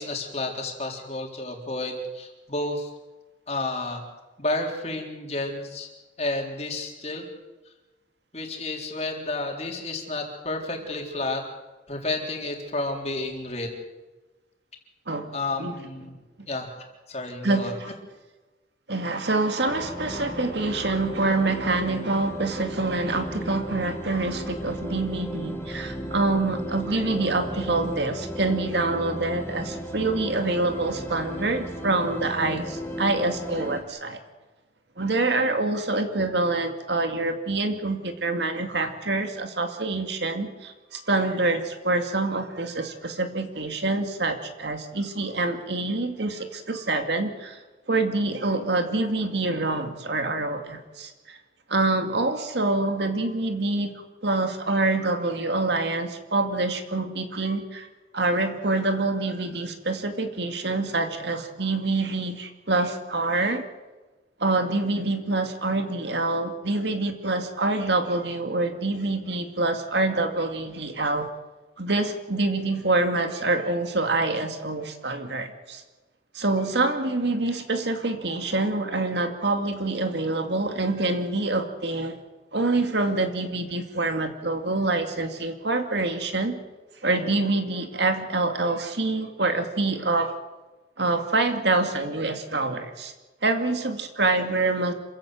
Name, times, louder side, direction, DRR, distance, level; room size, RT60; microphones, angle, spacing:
voice 1, 0.0-2.9 3.5-4.0 4.4-5.9 6.2-7.2 8.3-11.4 11.9-13.7 15.3-16.1 16.5-16.7 17.1-17.7, left 2 dB, 35° left, 2 dB, 3.8 m, -31 dB
voice 2, 15.1-15.7 17.4-17.9 18.9-34.2 35.0-47.6 47.9-51.4 51.7-53.9 54.2-57.9 58.1-63.7 64.4-71.3 71.8-75.8 76.3-82.1 82.5-86.6 87.0-90.3 91.0-93.1 93.4-94.9, right 2 dB, 65° right, 6 dB, 2.3 m, -26 dB
sound 1, 19.7-33.8, equal, 15° left, 2.4 m, -35 dB
27.0 x 16.0 x 7.7 m, 1.2 s
head